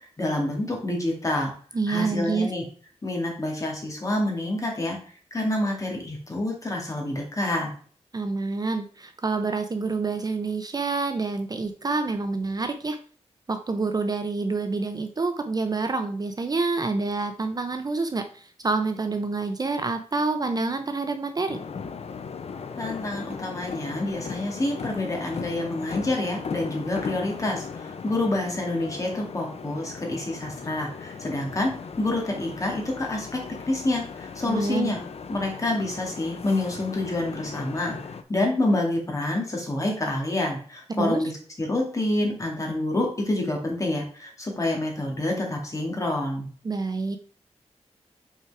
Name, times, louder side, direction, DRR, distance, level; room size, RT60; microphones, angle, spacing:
voice 1, 0.2-1.5 1.9-2.6 3.0-5.0 5.3-7.7 22.8-31.7 32.0-33.3 33.7-35.0 35.3-38.0 38.3-41.3 41.6-46.5, left 1 dB, 30° left, 0 dB, 2.1 m, -27 dB
voice 2, 1.7-2.5 8.1-13.0 13.5-21.6 34.4-34.9 41.0-41.2 46.6-47.2, right 3 dB, 35° right, 8 dB, 0.5 m, -27 dB
sound 1, 21.5-38.2, left 5 dB, 65° left, 0.6 m, -37 dB
5.7 x 4.6 x 4.7 m, 0.43 s
wide cardioid pair, 145°, 12 cm